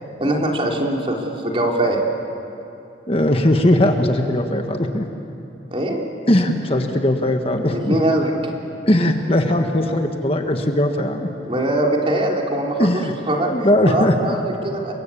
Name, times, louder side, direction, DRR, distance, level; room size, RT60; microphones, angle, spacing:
voice 1, 0.2-2.0 5.7-6.0 7.7-8.5 11.4-13.0 13.3-14.9, right 1 dB, 30° right, 0 dB, 3.4 m, -22 dB
voice 2, 3.1-5.1 6.3-8.0 8.9-11.3 12.8-13.1 13.4-14.4, left 1 dB, 35° left, 4 dB, 1.6 m, -19 dB
29.5 x 23.0 x 8.6 m, 2.7 s
head